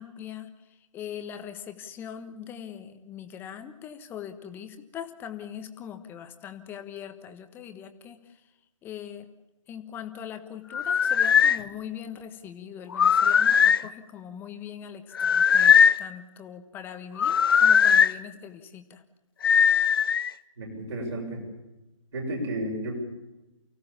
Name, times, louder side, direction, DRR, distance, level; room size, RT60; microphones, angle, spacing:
voice 1, 0.0-8.5 8.8-9.3 9.7-19.0, left 9 dB, 10° left, 8 dB, 1.4 m, -41 dB
sound 1, 10.7-11.6 12.9-13.8 15.1-16.0 17.2-18.1 19.4-20.3, left 7 dB, 45° left, 0.7 m, -19 dB
voice 2, 20.6-21.4 22.1-23.0, right 1 dB, 55° right, -2 dB, 7.0 m, -32 dB
29.5 x 17.0 x 7.2 m, 1.0 s
figure-of-eight pair, 135°, 17 cm